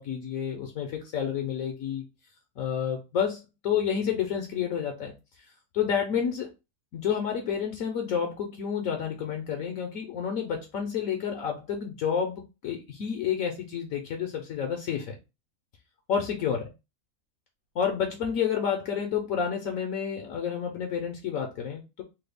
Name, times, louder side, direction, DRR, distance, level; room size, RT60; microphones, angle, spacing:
voice 1, 0.0-2.0 2.6-5.1 5.7-6.5 6.9-15.1 16.1-16.6 17.7-22.0, left 8 dB, 65° left, 0.9 m, -30 dB
3.2 x 2.3 x 3.3 m
omnidirectional pair, 1.7 m